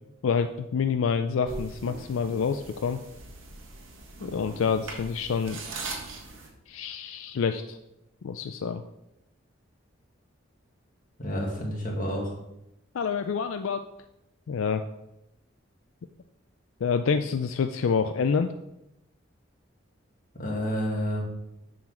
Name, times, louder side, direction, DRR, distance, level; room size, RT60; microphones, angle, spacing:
voice 1, 0.2-3.0 4.2-5.6 6.7-7.8 8.2-8.8 12.9-13.8 14.5-14.8 16.8-18.5, left 6 dB, 80° left, 8 dB, 0.4 m, -27 dB
sound 1, 1.4-6.5, right 3 dB, 85° right, 1.5 m, -40 dB
voice 2, 11.2-12.3 20.4-21.2, equal, 40° left, -1 dB, 1.8 m, -29 dB
7.3 x 4.0 x 6.1 m, 0.86 s
head